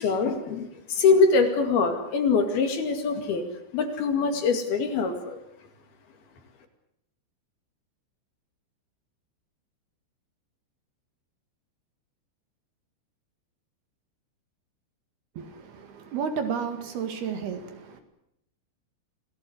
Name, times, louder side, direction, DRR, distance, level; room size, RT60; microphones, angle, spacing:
voice 1, 0.0-3.4 3.7-5.4, left 4 dB, 60° left, 3.9 m, -23 dB
voice 2, 15.4-18.0, right 6 dB, 65° right, 3.9 m, -32 dB
27.5 x 18.0 x 7.9 m
omnidirectional pair, 5.2 m